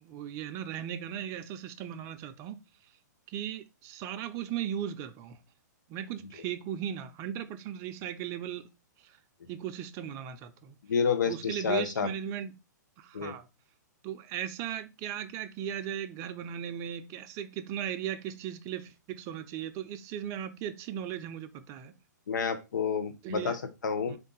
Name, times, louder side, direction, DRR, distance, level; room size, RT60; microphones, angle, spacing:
voice 1, 0.0-2.6 3.3-5.4 5.9-8.7 9.0-9.2 9.5-10.8 11.2-12.6 13.0-13.5 14.0-21.9 23.2-23.6 24.1-24.2, right 10 dB, 30° right, 0.5 m, -37 dB
voice 2, 10.9-12.1 13.1-13.3 22.3-24.2, left 6 dB, 75° left, 0.9 m, -29 dB
3.9 x 2.6 x 3.8 m
hypercardioid pair, 125°, 10 cm